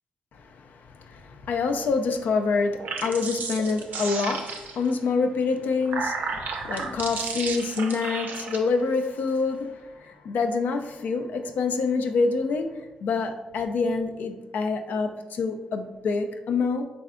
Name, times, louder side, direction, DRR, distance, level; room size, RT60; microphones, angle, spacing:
voice 1, 0.4-12.7 13.0-16.8, left 4 dB, 80° left, 0.3 m, -26 dB
sound 1, 2.7-4.9 5.6-8.6, right 4 dB, 75° right, 0.4 m, -33 dB
3.6 x 3.2 x 2.5 m
cardioid pair, 60°, 3 cm